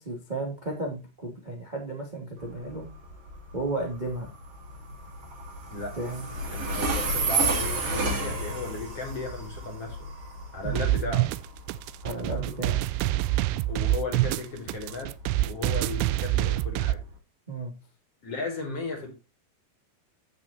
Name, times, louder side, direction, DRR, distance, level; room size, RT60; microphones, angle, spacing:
voice 1, 0.0-2.8 3.5-4.3 6.0-6.2 10.6-10.9 12.0-12.8 17.5-17.7, right 2 dB, 15° right, 1.9 m, -33 dB
Train, 2.4-17.1, right 3 dB, 40° right, 3.0 m, -32 dB
voice 2, 6.5-10.1 10.5-11.3 12.1-12.6 13.7-15.1 15.4-17.0 18.2-19.1, left 3 dB, 35° left, 4.8 m, -36 dB
sound 1, 10.7-17.0, right 16 dB, 80° right, 2.5 m, -26 dB
14.5 x 6.3 x 2.7 m
omnidirectional pair, 4.7 m